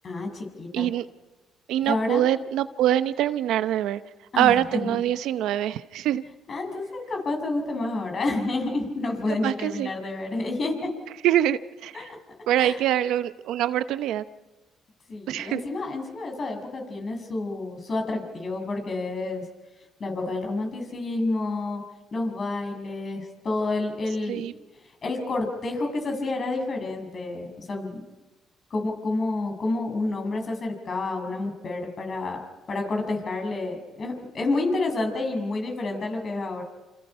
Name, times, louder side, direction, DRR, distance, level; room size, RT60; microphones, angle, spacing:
voice 1, 0.0-0.9 1.8-2.2 4.3-5.0 6.5-10.9 11.9-12.2 12.6-12.8 15.1-19.4 20.0-21.8 22.1-24.4 25.0-28.0 28.7-32.4 32.7-36.6, left 2 dB, 45° left, 4 dB, 6.5 m, -29 dB
voice 2, 0.7-1.1 1.7-4.0 4.4-6.2 9.4-9.9 11.2-12.1 12.5-14.2 15.3-15.6 24.3-24.5, right 12 dB, 80° right, 13 dB, 0.8 m, -24 dB
27.5 x 27.5 x 5.7 m, 1.2 s
cardioid pair, 85°, 0 cm